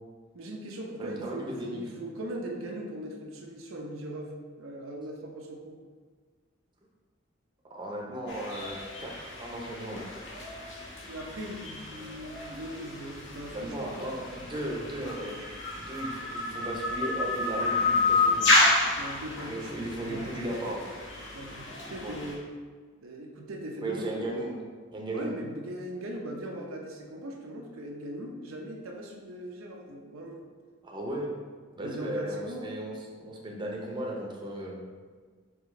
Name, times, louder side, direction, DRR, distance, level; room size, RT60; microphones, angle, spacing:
voice 1, 0.3-5.8 11.1-14.1 19.0-20.6 21.3-22.5 23.0-24.3 25.1-30.4 31.8-32.7, right 1 dB, 90° right, 0 dB, 0.7 m, -39 dB
voice 2, 1.0-1.8 7.7-10.0 13.5-15.3 15.8-18.5 19.5-20.8 21.9-22.2 23.8-24.6 24.9-25.3 30.8-31.3 31.7-34.9, right 1 dB, 25° right, -2 dB, 0.6 m, -36 dB
sound 1, 8.3-22.3, left 2 dB, 60° left, 1.0 m, -30 dB
4.9 x 3.0 x 3.6 m, 1.5 s
head